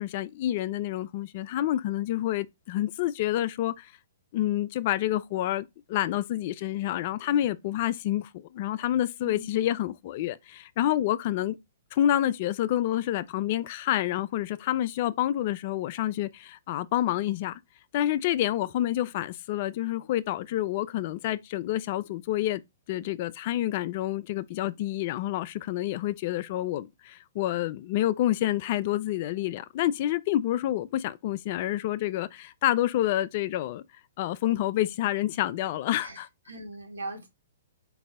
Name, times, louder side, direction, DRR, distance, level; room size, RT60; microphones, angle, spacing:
voice 1, 0.0-3.9 4.3-11.6 11.9-17.6 17.9-22.6 22.9-33.8 34.2-36.3, left 13 dB, 45° left, 0.3 m, -28 dB
voice 2, 9.2-9.7 36.0-37.3, right 2 dB, 80° right, 1.4 m, -40 dB
3.9 x 2.7 x 3.5 m
hypercardioid pair, 125°, 0 cm